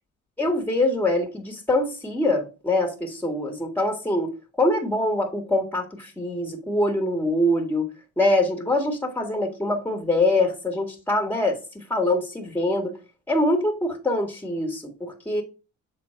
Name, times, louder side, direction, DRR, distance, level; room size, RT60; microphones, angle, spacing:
voice 1, 0.4-7.9 8.2-13.0 13.3-15.4, left 1 dB, 5° left, 1.9 m, -24 dB
7.4 x 3.9 x 4.4 m
cardioid pair, 90°, 30 cm